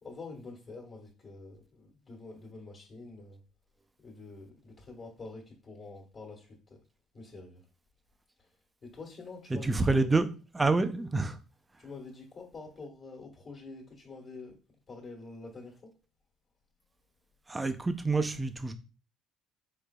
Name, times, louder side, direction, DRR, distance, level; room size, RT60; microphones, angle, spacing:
voice 1, 0.0-3.4 4.0-6.8 7.1-7.6 8.8-10.2 11.8-14.6 14.9-15.9, left 3 dB, 40° left, 1.3 m, -47 dB
voice 2, 9.5-10.3 10.5-11.4 17.5-18.7, right 3 dB, 15° right, 0.4 m, -27 dB
5.0 x 3.9 x 2.3 m
cardioid pair, 140°, 0 cm